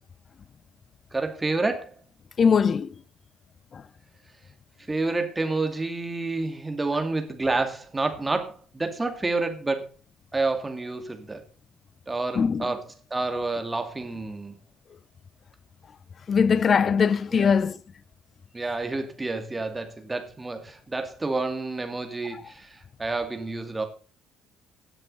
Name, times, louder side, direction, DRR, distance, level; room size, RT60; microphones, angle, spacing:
voice 1, 1.1-2.0 4.9-9.9 10.3-11.4 12.1-12.8 13.1-14.6 17.3-17.5 18.5-23.8, right 3 dB, 20° right, 2.6 m, -29 dB
voice 2, 2.4-2.9 3.7-3.8 12.4-12.7 16.3-17.8, left 6 dB, 40° left, 0.7 m, -21 dB
17.5 x 7.6 x 4.2 m
figure-of-eight pair, 50°, 0 cm